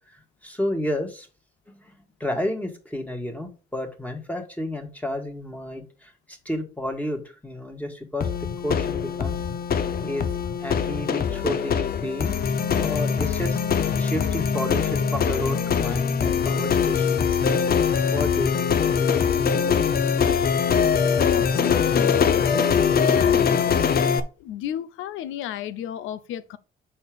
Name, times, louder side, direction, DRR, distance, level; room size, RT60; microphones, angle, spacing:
voice 1, 0.4-1.3 1.8-1.9 2.2-8.3 8.6-9.4 10.0-10.3 10.6-12.4 12.7-17.4 18.1-19.2, left 1 dB, 5° left, 1.9 m, -31 dB
sound 1, 8.2-24.2, left 7 dB, 50° left, 0.7 m, -22 dB
voice 2, 21.3-22.6 23.1-23.7 24.4-26.6, left 11 dB, 90° left, 0.6 m, -33 dB
6.5 x 4.4 x 5.0 m
cardioid pair, 90°, 20 cm